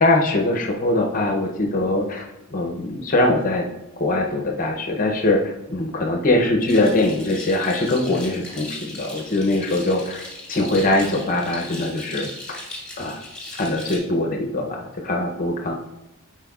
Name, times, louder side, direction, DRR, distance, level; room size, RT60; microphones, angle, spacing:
voice 1, 0.0-3.7 4.0-10.2 10.5-12.6 13.0-13.2 13.6-15.7, left 2 dB, 40° left, 2 dB, 0.6 m, -22 dB
sound 1, 6.7-14.0, left 2 dB, 5° left, 2.2 m, -38 dB
10.5 x 4.6 x 2.3 m, 0.97 s
head